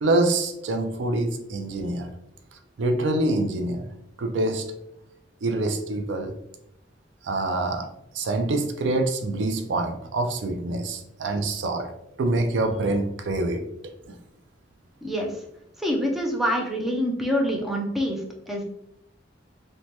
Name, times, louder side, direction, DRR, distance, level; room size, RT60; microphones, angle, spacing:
voice 1, 0.0-2.1 2.8-3.8 4.2-4.6 5.4-6.3 7.2-7.9 8.1-11.9 12.2-13.6, right 2 dB, 80° right, 6 dB, 0.4 m, -25 dB
voice 2, 15.0-15.3 15.8-18.6, equal, ahead, -1 dB, 0.4 m, -26 dB
3.1 x 2.1 x 2.8 m, 0.81 s
head